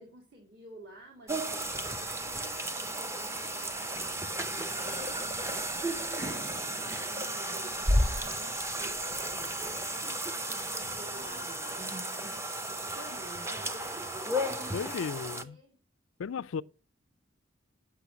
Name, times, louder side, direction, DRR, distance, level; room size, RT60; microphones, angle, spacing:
voice 1, 0.0-7.8 8.3-11.9 12.6-15.0 15.3-15.8, right 1 dB, 55° right, 2.1 m, -51 dB
sound 1, 1.3-15.4, right 1 dB, 15° right, 0.6 m, -35 dB
sound 2, 1.5-9.8, left 1 dB, 30° right, 2.3 m, -36 dB
sound 3, 5.6-6.9 7.2-8.7 9.1-10.6 10.9-12.4 12.8-13.8, left 1 dB, 75° right, 1.8 m, -56 dB
voice 2, 14.7-15.6 16.2-16.6, left 6 dB, 85° left, 0.4 m, -35 dB
8.2 x 6.3 x 6.1 m
head